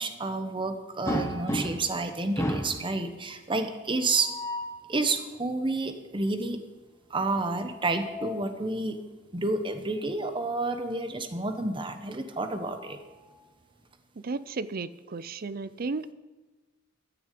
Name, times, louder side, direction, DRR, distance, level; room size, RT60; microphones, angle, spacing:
voice 1, 0.0-4.3 4.9-6.6 7.1-9.0 9.3-13.0, right 3 dB, 25° right, 7 dB, 1.0 m, -30 dB
sound 1, 1.1-2.0 2.4-2.8 4.1-4.8 7.5-8.5 9.9-10.1 10.5-10.6 12.1-13.4, equal, 15° left, 1.2 m, -34 dB
voice 2, 14.2-16.1, right 4 dB, 45° right, 16 dB, 0.5 m, -34 dB
13.0 x 7.0 x 8.5 m, 1.2 s
head